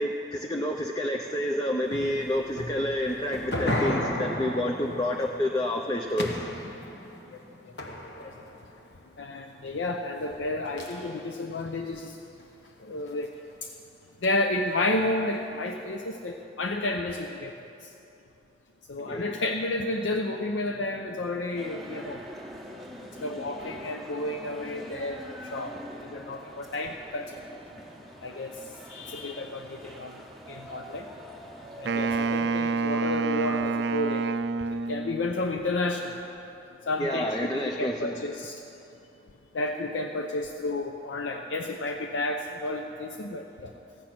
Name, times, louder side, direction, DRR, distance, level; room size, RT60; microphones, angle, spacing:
voice 1, 0.0-6.4 19.1-19.2 37.0-38.2, left 1 dB, 20° left, 2 dB, 0.5 m, -29 dB
sound 1, 1.9-8.9 10.8-11.8 12.4-12.7 13.1-13.2 14.2-14.3 14.7-14.8, left 1 dB, 70° left, 1.1 m, -34 dB
voice 2, 9.2-12.2 12.8-13.3 13.6-13.7 14.2-17.5 18.9-22.2 23.1-25.7 26.1-27.4 28.2-28.6 28.9-31.1 31.8-34.2 34.9-36.3 36.9-37.3 37.8-38.6 39.5-43.7, left 2 dB, 90° left, 4 dB, 0.6 m, -31 dB
sound 2, 21.6-32.5, equal, ahead, 1.3 m, -44 dB
Wind instrument woodwind instrument, 31.9-35.3, right 4 dB, 70° right, 0.3 m, -28 dB
15.5 x 6.0 x 8.8 m, 2.9 s
head